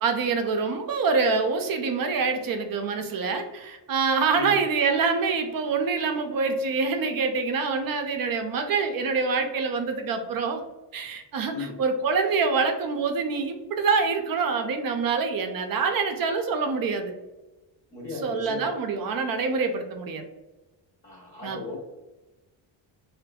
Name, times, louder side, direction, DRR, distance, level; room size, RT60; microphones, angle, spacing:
voice 1, 0.0-10.6 10.9-17.1 18.2-20.2 21.4-21.6, right 4 dB, 50° right, 5 dB, 0.5 m, -26 dB
voice 2, 17.9-18.8 21.0-21.8, left 4 dB, 25° left, -3 dB, 0.7 m, -36 dB
2.6 x 2.5 x 2.2 m, 1.1 s
cardioid pair, 105°, 45 cm